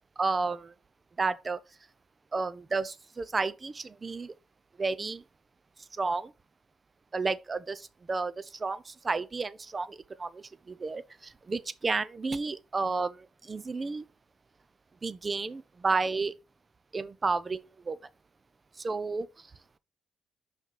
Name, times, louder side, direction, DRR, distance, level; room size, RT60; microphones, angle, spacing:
voice 1, 0.2-0.7 1.2-1.6 2.3-4.3 4.8-5.2 5.9-6.3 7.1-14.1 15.0-16.3 16.9-18.0 18.8-19.5, right 4 dB, 35° right, 0.6 m, -32 dB
5.6 x 4.4 x 3.9 m
cardioid pair, 75°, 0 cm